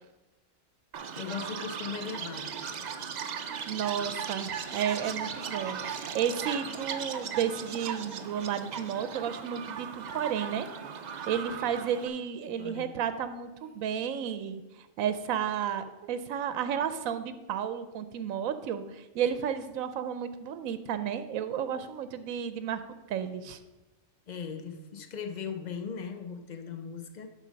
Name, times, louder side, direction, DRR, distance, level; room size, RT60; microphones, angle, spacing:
Chirp tweet, 0.9-12.1, right 7 dB, 60° right, 0.4 m, -37 dB
voice 1, 1.2-2.5 12.6-13.0 24.3-27.3, left 6 dB, 45° left, 7 dB, 0.6 m, -38 dB
voice 2, 3.7-10.7 11.3-22.8 23.1-23.6, right 8 dB, 85° right, 12 dB, 1.0 m, -32 dB
11.0 x 4.0 x 5.1 m, 1.1 s
omnidirectional pair, 1.4 m